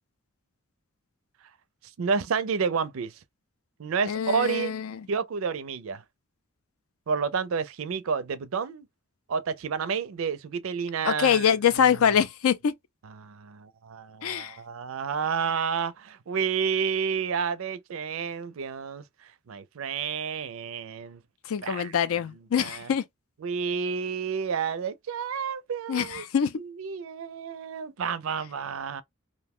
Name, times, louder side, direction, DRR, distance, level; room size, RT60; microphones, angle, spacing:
voice 1, 2.0-3.2 3.8-4.7 5.1-6.0 7.1-8.9 9.3-12.0 13.0-21.2 21.6-21.9 22.6-22.9 23.4-26.2 26.6-29.0, right 6 dB, 70° right, 0.4 m, -30 dB
voice 2, 4.1-4.9 11.0-12.7 14.2-14.6 21.5-23.0 25.9-26.5, left 8 dB, 75° left, 0.4 m, -24 dB
2.6 x 2.1 x 3.5 m
head